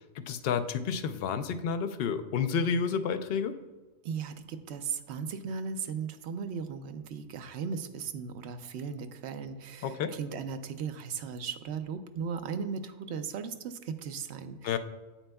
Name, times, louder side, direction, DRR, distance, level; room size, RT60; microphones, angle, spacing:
voice 1, 0.0-3.6 9.8-10.1 14.6-14.8, left 6 dB, 65° left, 9 dB, 0.7 m, -30 dB
voice 2, 4.0-14.8, right 6 dB, 70° right, 9 dB, 0.8 m, -37 dB
8.8 x 7.8 x 2.2 m, 1.2 s
omnidirectional pair, 1.2 m